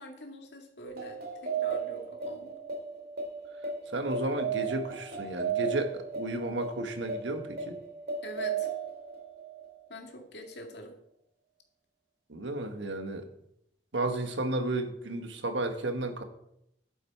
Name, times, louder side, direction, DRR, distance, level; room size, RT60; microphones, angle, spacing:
voice 1, 0.0-2.6 8.2-8.7 9.9-11.0, left 1 dB, 65° left, 2 dB, 2.1 m, -45 dB
sound 1, 0.8-9.8, right 6 dB, 50° right, 2.7 m, -35 dB
voice 2, 3.9-7.8 12.3-13.2 13.9-16.2, right 2 dB, 80° right, 7 dB, 1.4 m, -33 dB
11.5 x 8.6 x 4.7 m, 0.78 s
head